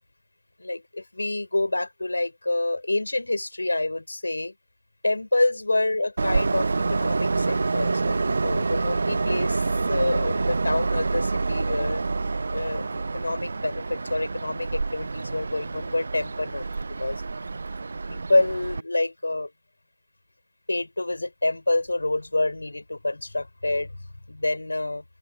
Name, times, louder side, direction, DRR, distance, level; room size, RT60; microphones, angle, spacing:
voice 1, 0.6-4.5 5.0-9.6 9.9-12.0 12.5-17.2 18.1-19.5 20.7-23.9 24.3-25.0, left 2 dB, 90° left, 6.8 m, -27 dB
Train, 6.2-18.8, right 3 dB, 65° right, 0.9 m, -27 dB
open air
figure-of-eight pair, 165°, 0 cm